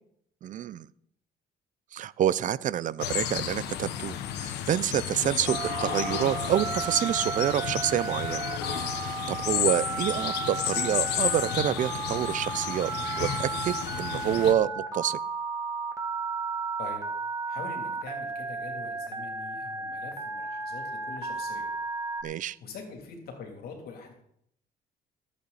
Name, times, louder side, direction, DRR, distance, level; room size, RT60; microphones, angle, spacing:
voice 1, 0.4-0.9 1.9-8.5 9.0-12.9 13.2-15.2 22.2-22.6, right 10 dB, 50° right, 19 dB, 0.6 m, -28 dB
sound 1, 3.0-14.5, left 10 dB, 85° left, 1.3 m, -32 dB
Telephone, 5.5-22.2, right 4 dB, 20° right, 2.1 m, -34 dB
voice 2, 17.5-21.7 22.3-24.1, left 5 dB, 65° left, 2 dB, 3.2 m, -44 dB
20.5 x 8.5 x 4.2 m, 0.73 s
cardioid pair, 110°, 17 cm